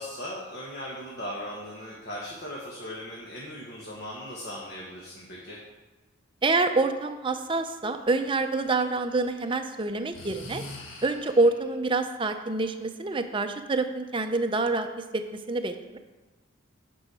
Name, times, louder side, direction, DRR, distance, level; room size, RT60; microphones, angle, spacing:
voice 1, 0.0-5.6, left 1 dB, 50° left, -4 dB, 1.3 m, -38 dB
voice 2, 6.4-10.6 11.0-15.2 15.5-16.0, right 3 dB, 25° right, 7 dB, 0.5 m, -26 dB
Breathing, 8.1-9.3 10.1-11.7, left 2 dB, 80° left, 1.4 m, -44 dB
9.4 x 6.2 x 4.8 m, 1.2 s
head